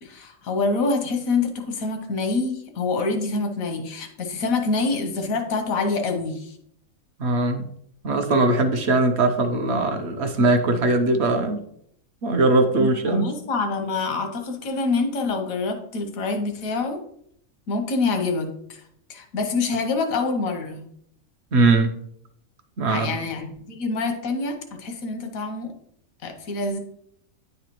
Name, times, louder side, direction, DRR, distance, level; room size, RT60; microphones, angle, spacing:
voice 1, 0.0-6.6 12.8-17.0 17.7-18.8 19.1-20.9 22.8-25.7 26.2-26.8, left 3 dB, 85° left, 4 dB, 1.3 m, -26 dB
voice 2, 7.2-7.7 8.0-11.6 12.2-13.2 21.5-22.0 22.8-23.1, right 2 dB, 60° right, 6 dB, 1.0 m, -20 dB
9.7 x 4.0 x 3.0 m, 0.70 s
omnidirectional pair, 1.4 m